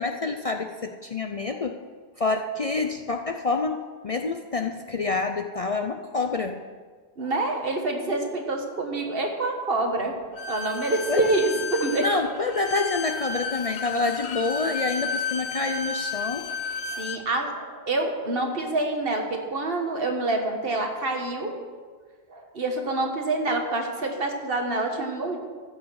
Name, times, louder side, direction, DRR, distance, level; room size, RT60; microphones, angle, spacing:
voice 1, 0.0-1.8 2.2-6.6 11.1-11.3 12.0-16.5, left 3 dB, 45° left, 4 dB, 0.5 m, -27 dB
voice 2, 7.2-12.2 16.9-21.6 22.3-25.4, right 2 dB, 60° right, 3 dB, 1.7 m, -27 dB
Bowed string instrument, 10.4-17.2, left 5 dB, 75° left, 1.1 m, -32 dB
15.0 x 6.5 x 6.4 m, 1.5 s
omnidirectional pair, 1.1 m